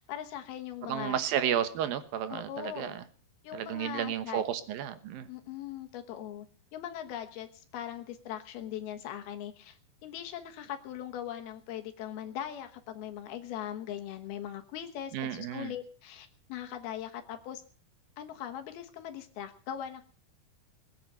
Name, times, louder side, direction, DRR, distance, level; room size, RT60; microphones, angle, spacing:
voice 1, 0.1-1.2 2.3-2.9 3.4-4.4 5.3-6.5 6.7-17.6 18.2-20.1, left 10 dB, 80° left, 6 dB, 3.1 m, -40 dB
voice 2, 0.9-3.0 3.5-5.3 15.1-15.7, right 10 dB, 70° right, 11 dB, 2.8 m, -32 dB
20.5 x 8.7 x 6.7 m, 0.42 s
omnidirectional pair, 4.5 m